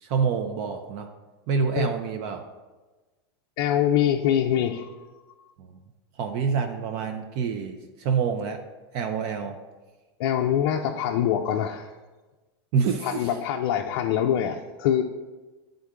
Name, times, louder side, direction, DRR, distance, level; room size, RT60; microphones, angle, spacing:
voice 1, 0.0-1.1 1.5-2.4 5.6-5.7 6.2-8.6 8.9-9.6 12.7-13.3, right 6 dB, 45° right, 5 dB, 0.5 m, -27 dB
voice 2, 3.6-4.9 10.2-11.9 13.0-15.0, left 10 dB, 55° left, 2 dB, 0.4 m, -24 dB
8.1 x 3.7 x 3.6 m, 1.2 s
supercardioid pair, 145°, 13 cm